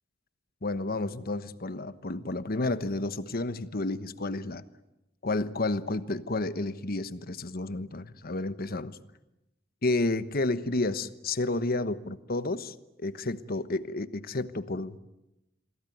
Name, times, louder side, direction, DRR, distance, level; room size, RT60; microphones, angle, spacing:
voice 1, 0.6-4.6 5.2-9.0 9.8-12.7 13.0-15.0, left 2 dB, 50° left, 1.2 m, -31 dB
28.5 x 22.5 x 9.3 m
head